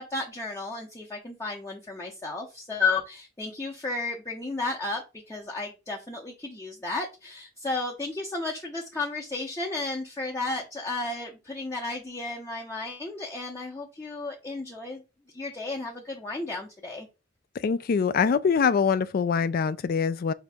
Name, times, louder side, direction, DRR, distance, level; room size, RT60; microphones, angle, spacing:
voice 1, 0.0-15.0 15.3-17.1, left 3 dB, 15° left, 0.6 m, -33 dB
voice 2, 17.6-20.3, left 6 dB, 50° left, 0.3 m, -24 dB
5.0 x 2.8 x 3.4 m
head